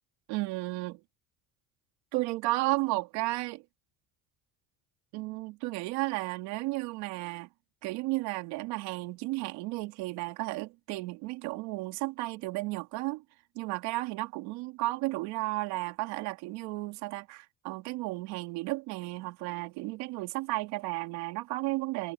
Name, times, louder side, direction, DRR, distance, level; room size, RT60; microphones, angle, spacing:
voice 1, 0.3-1.0 2.1-3.6 5.1-7.5 7.8-13.2 13.5-22.1, right 21 dB, 80° right, 2.9 m, -33 dB
cardioid pair, 170°, 39 cm